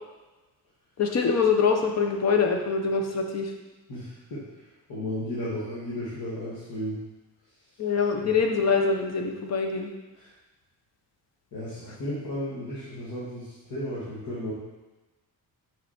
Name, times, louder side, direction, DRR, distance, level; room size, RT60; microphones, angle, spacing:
voice 1, 1.0-3.5 7.8-9.9, left 5 dB, 45° left, 3 dB, 1.0 m, -24 dB
voice 2, 3.9-4.4 4.9-7.0 10.2-10.3 11.5-14.5, equal, 60° left, -10 dB, 2.2 m, -34 dB
6.2 x 5.9 x 4.3 m, 1.1 s
cardioid pair, 150°, 38 cm